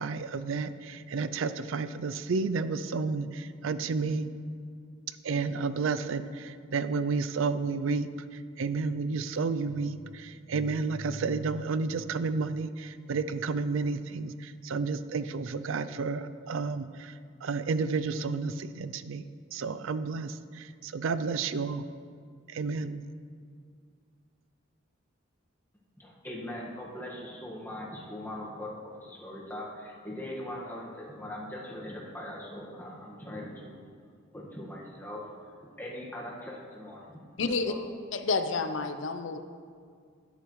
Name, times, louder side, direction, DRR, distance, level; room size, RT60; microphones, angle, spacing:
voice 1, 0.0-4.3 5.2-8.1 8.6-17.1 17.4-19.2 19.5-21.9 22.5-23.0, right 4 dB, 80° right, 13 dB, 0.4 m, -31 dB
voice 2, 26.0-33.8 34.3-35.2 35.8-37.2 37.4-37.8, left 1 dB, 10° left, -4 dB, 1.6 m, -41 dB
voice 3, 37.4-37.7 38.1-39.4, left 4 dB, 70° left, 8 dB, 0.7 m, -29 dB
13.0 x 10.5 x 3.2 m, 2.1 s
head